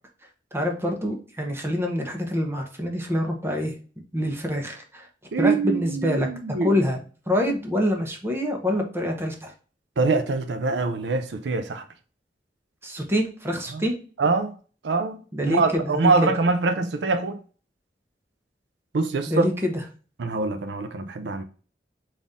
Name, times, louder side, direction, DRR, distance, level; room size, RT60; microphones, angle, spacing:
voice 1, 0.5-3.7 4.1-5.1 5.4-6.3 6.6-7.0 7.3-9.5 12.8-14.0 15.3-16.3 19.3-19.8, left 1 dB, 15° right, 0.8 m, -26 dB
voice 2, 5.3-6.8 10.0-11.8 13.7-13.8 14.2-14.5 14.8-15.2 15.5-17.4 18.9-19.5 20.2-21.4, right 3 dB, 80° right, 0.5 m, -24 dB
4.0 x 2.6 x 3.5 m
head